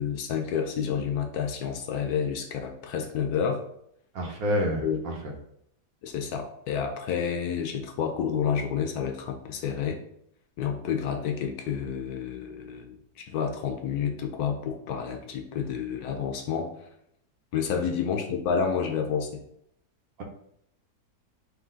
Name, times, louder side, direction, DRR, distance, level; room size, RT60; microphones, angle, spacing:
voice 1, 0.0-3.6 4.8-5.0 6.0-10.0 10.6-16.7 17.5-19.4, left 7 dB, 70° left, 5 dB, 1.0 m, -29 dB
voice 2, 4.1-5.3 20.2-20.3, equal, 65° right, 2 dB, 1.1 m, -28 dB
3.8 x 3.0 x 3.7 m, 0.73 s
omnidirectional pair, 1.8 m